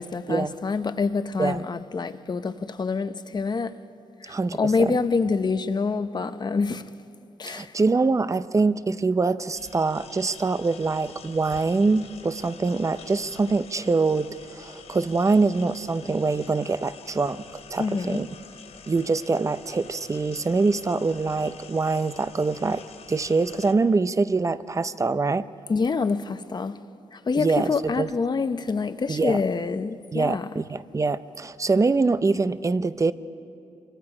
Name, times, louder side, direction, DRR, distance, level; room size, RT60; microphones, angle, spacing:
voice 1, 0.0-3.8 4.2-6.9 7.4-7.7 17.8-18.3 25.7-26.8 27.1-30.6, left 4 dB, 35° left, 0.8 m, -26 dB
voice 2, 4.3-5.0 7.5-17.4 17.7-18.3 18.9-22.8 23.1-25.5 27.3-28.1 29.1-29.4 30.1-33.1, right 3 dB, 25° right, 0.6 m, -24 dB
sound 1, 9.5-23.7, left 6 dB, 65° left, 2.8 m, -46 dB
27.5 x 24.0 x 4.9 m
cardioid pair, 105°, 12 cm